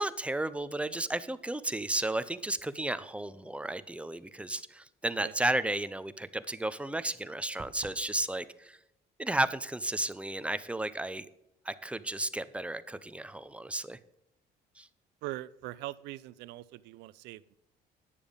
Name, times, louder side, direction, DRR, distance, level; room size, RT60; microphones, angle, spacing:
voice 1, 0.0-8.8 9.2-11.3 11.7-14.0 14.8-14.9, right 1 dB, 5° right, 14 dB, 0.5 m, -33 dB
sound 1, 7.6-8.1, right 4 dB, 30° right, 0.9 m, -47 dB
voice 2, 15.2-17.5, right 16 dB, 90° right, 18 dB, 0.5 m, -42 dB
9.9 x 7.0 x 5.1 m, 0.86 s
cardioid pair, 110°, 17 cm